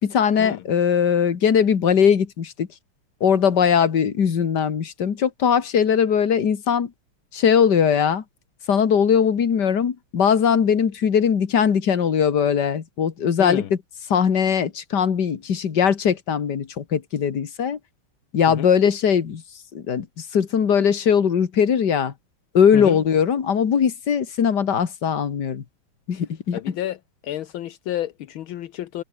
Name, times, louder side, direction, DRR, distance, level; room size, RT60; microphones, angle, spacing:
voice 1, 0.0-2.7 3.2-6.9 7.3-8.2 8.7-13.8 14.1-17.8 18.3-19.4 19.7-22.1 22.5-25.6 26.1-26.8, left 7 dB, 55° left, 2.3 m, -20 dB
voice 2, 13.4-13.7 18.5-18.7 22.7-23.0 26.5-27.0 27.2-29.0, left 13 dB, 75° left, 1.7 m, -30 dB
omnidirectional pair, 2.3 m